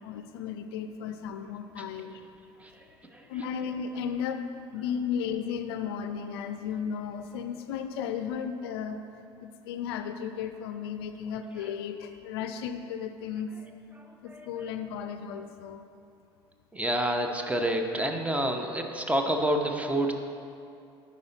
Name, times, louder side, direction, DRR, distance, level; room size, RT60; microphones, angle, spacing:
voice 1, 0.0-2.2 3.3-4.4 4.7-9.0 9.4-13.5 14.2-15.8, left 7 dB, 65° left, 8 dB, 0.4 m, -34 dB
voice 2, 2.6-3.3 14.0-14.7 16.7-20.1, right 1 dB, 10° right, 4 dB, 0.7 m, -29 dB
10.5 x 4.2 x 4.0 m, 2.5 s
figure-of-eight pair, 65°, 14 cm